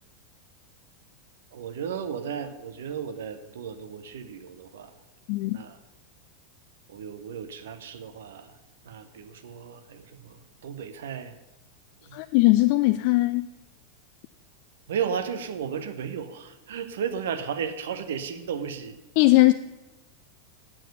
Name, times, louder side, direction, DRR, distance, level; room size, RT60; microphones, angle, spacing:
voice 1, 1.5-4.9 5.5-5.8 6.9-8.5 8.9-11.3 12.0-12.2 14.9-19.0, right 7 dB, 65° right, 0.9 m, -34 dB
voice 2, 12.1-13.5 19.2-19.5, left 19 dB, 50° left, 0.3 m, -19 dB
8.9 x 7.2 x 6.6 m
figure-of-eight pair, 90°, 0 cm